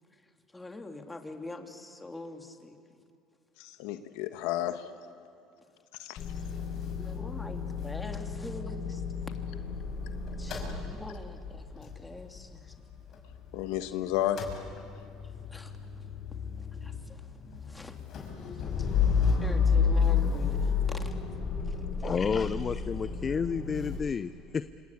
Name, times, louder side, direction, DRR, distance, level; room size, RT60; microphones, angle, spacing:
voice 1, 0.1-2.8 6.3-6.5 7.0-9.0 10.4-12.8 15.2-18.0 18.5-18.9 19.2-21.2 21.6-22.6, left 2 dB, 15° left, 4 dB, 2.9 m, -45 dB
voice 2, 3.6-4.9 6.0-6.2 13.5-14.4, left 13 dB, 80° left, 9 dB, 1.2 m, -32 dB
Motor vehicle (road) / Engine starting / Idling, 6.2-13.9 14.1-24.0, left 6 dB, 50° left, 6.0 m, -31 dB
voice 3, 22.0-24.7, left 6 dB, 35° left, 13 dB, 0.7 m, -31 dB
28.0 x 25.0 x 8.6 m, 2.5 s
supercardioid pair, 90°, 0 cm